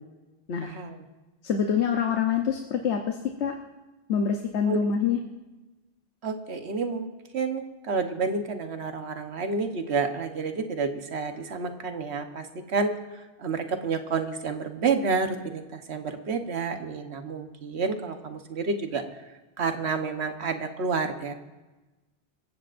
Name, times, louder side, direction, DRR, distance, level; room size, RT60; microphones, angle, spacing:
voice 1, 0.6-1.0 4.7-4.8 6.2-12.9 13.4-19.0 19.6-21.3, right 4 dB, 75° right, 6 dB, 1.4 m, -29 dB
voice 2, 1.4-3.5 4.1-5.2, left 7 dB, 90° left, 3 dB, 1.2 m, -26 dB
26.5 x 15.5 x 2.6 m, 1.1 s
omnidirectional pair, 1.1 m